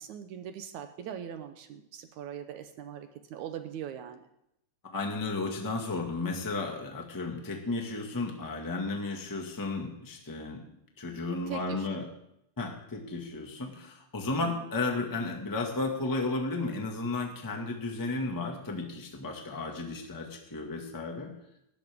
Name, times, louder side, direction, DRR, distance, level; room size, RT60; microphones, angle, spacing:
voice 1, 0.0-4.2 11.5-12.0 14.4-14.7, right 9 dB, 75° right, 8 dB, 2.1 m, -41 dB
voice 2, 4.8-10.6 11.0-12.1 12.6-21.3, left 3 dB, 10° left, 1 dB, 1.1 m, -33 dB
18.5 x 13.0 x 3.7 m, 0.80 s
omnidirectional pair, 3.7 m